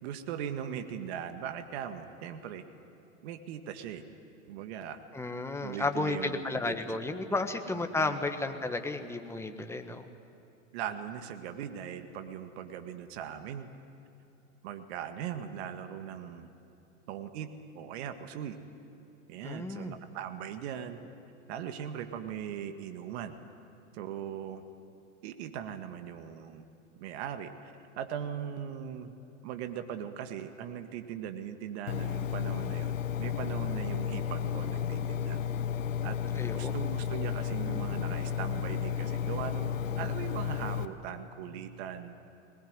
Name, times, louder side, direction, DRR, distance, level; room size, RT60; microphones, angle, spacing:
voice 1, 0.0-2.6 3.2-4.0 4.5-5.0 5.6-7.0 7.3-7.4 7.7-8.2 10.7-13.7 14.6-16.5 17.1-17.5 17.7-18.6 19.3-21.0 21.5-23.4 23.9-24.6 25.2-26.6 27.0-29.1 29.4-35.4 36.0-36.2 36.5-42.1, right 9 dB, 55° right, 8 dB, 1.9 m, -39 dB
voice 2, 5.1-10.1 19.4-20.0 36.3-36.7, left 3 dB, 5° left, 6 dB, 1.6 m, -33 dB
Engine, 31.9-40.9, left 8 dB, 80° left, 1.4 m, -32 dB
21.0 x 20.5 x 9.7 m, 2.8 s
hypercardioid pair, 105°, 38 cm